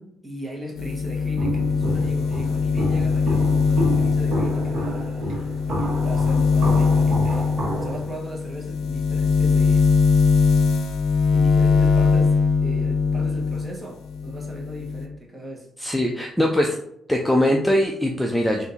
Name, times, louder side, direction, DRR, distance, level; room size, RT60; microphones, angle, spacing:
voice 1, 0.2-5.3 6.0-10.0 11.3-15.7, right 1 dB, 20° right, -1 dB, 1.2 m, -37 dB
sound 1, 0.8-13.7 14.0-15.1, left 5 dB, 85° left, 0.5 m, -21 dB
Walk footsteps, 1.4-8.1, right 1 dB, 55° right, 1.1 m, -30 dB
voice 2, 15.8-16.8 17.1-18.6, left 1 dB, 5° left, 1 dB, 0.5 m, -21 dB
3.5 x 2.7 x 4.1 m, 0.73 s
cardioid pair, 90°, 0 cm